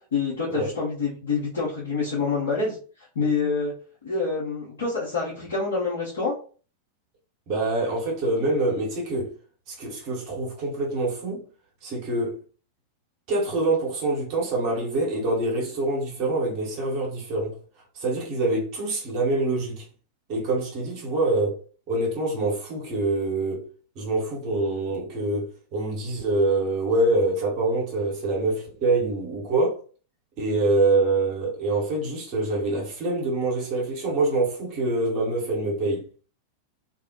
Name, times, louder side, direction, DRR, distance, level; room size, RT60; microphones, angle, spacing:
voice 1, 0.1-2.8 3.1-3.7 4.0-6.3, left 4 dB, 65° left, 1.1 m, -26 dB
voice 2, 7.5-9.3 9.7-11.4 11.8-12.4 13.3-17.6 18.0-19.8 20.3-21.6 21.9-23.6 23.9-29.8 30.4-36.1, right 2 dB, 40° right, 1.3 m, -25 dB
2.7 x 2.6 x 3.0 m
figure-of-eight pair, 90°, 0 cm